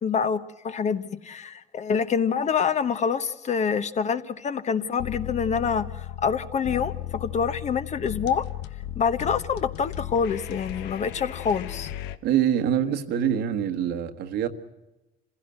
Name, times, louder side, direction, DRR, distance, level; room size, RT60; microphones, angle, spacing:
voice 1, 0.0-8.4 9.0-11.9, left 6 dB, 45° left, 1.1 m, -26 dB
sound 1, 5.0-12.2, left 13 dB, 90° left, 0.9 m, -36 dB
voice 2, 12.2-14.5, right 9 dB, 75° right, 1.5 m, -24 dB
26.5 x 16.0 x 7.8 m
cardioid pair, 110°, 17 cm